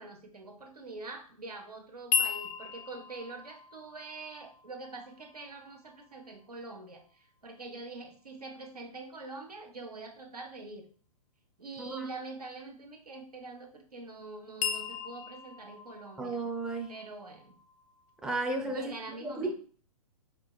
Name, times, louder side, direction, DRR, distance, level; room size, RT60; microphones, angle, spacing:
voice 1, 0.0-10.9 11.6-16.4 16.9-17.5 18.6-19.5, right 3 dB, 90° right, 3 dB, 1.0 m, -44 dB
sound 1, 2.1-6.2 14.6-18.4, left 7 dB, 50° left, 0.5 m, -37 dB
voice 2, 16.2-16.9 18.2-18.8 19.2-19.5, right 2 dB, 5° right, 1 dB, 0.5 m, -33 dB
4.4 x 4.3 x 2.3 m, 0.43 s
hypercardioid pair, 120°, 19 cm